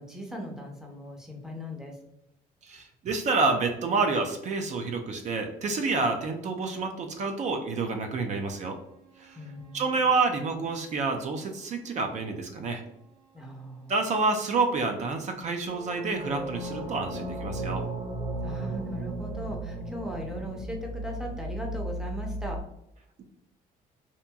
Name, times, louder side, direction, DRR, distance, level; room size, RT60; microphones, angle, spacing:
voice 1, 0.0-2.0 9.4-10.1 13.3-13.9 18.4-22.6, equal, 5° right, 0 dB, 0.6 m, -38 dB
voice 2, 2.7-8.8 9.2-9.4 9.7-12.8 13.9-17.9, right 3 dB, 45° right, 4 dB, 0.4 m, -28 dB
sound 1, 9.2-10.5 15.6-22.6, right 1 dB, 80° right, 0.8 m, -36 dB
2.8 x 2.5 x 2.2 m, 0.82 s
cardioid pair, 110°, 17 cm